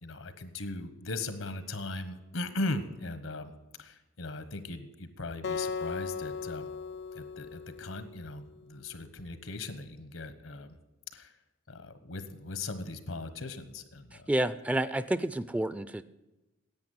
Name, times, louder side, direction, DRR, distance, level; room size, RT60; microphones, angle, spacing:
voice 1, 0.0-3.5 3.8-6.7 7.1-10.7 11.1-11.3 11.7-14.3, left 2 dB, 85° left, 11 dB, 1.2 m, -38 dB
Acoustic guitar, 5.4-8.7, left 5 dB, 60° left, 0.6 m, -38 dB
voice 2, 14.3-16.0, right 1 dB, 5° right, 14 dB, 0.3 m, -29 dB
10.5 x 8.4 x 9.5 m, 1.0 s
head